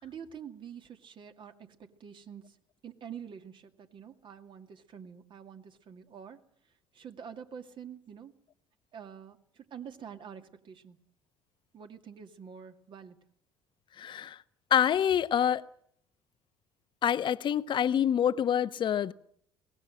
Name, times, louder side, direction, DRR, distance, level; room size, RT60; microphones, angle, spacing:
voice 1, 0.0-2.6 2.8-8.4 8.9-11.0 11.7-13.2, right 7 dB, 50° right, 2.2 m, -47 dB
voice 2, 14.0-14.4 14.7-15.6 17.0-19.1, left 9 dB, 45° left, 1.0 m, -26 dB
22.0 x 19.0 x 7.7 m
hypercardioid pair, 60°, 11 cm